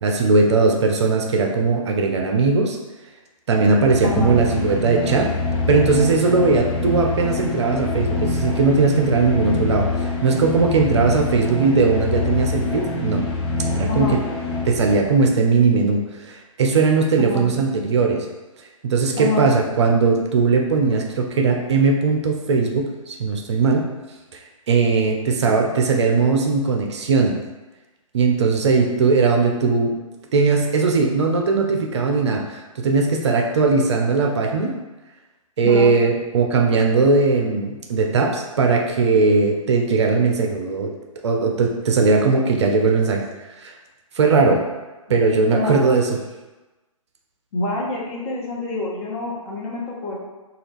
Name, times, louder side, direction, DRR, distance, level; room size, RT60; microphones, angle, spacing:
voice 1, 0.0-2.8 3.5-5.3 5.7-13.2 13.8-14.2 14.7-16.0 16.3-18.3 18.8-23.8 24.7-27.4 28.1-29.9 30.3-34.7 35.6-40.9 41.2-43.3 43.6-43.7 44.1-44.6 45.1-46.2, right 4 dB, 50° right, 2 dB, 0.5 m, -19 dB
sound 1, 3.6-15.3, left 2 dB, 50° left, 1.0 m, -25 dB
voice 2, 4.0-4.4 13.9-14.2 17.2-17.5 19.2-19.5 35.6-35.9 45.5-45.8 47.5-50.1, left 3 dB, 25° left, -4 dB, 0.8 m, -26 dB
4.0 x 2.4 x 3.4 m, 1.1 s
figure-of-eight pair, 130°, 18 cm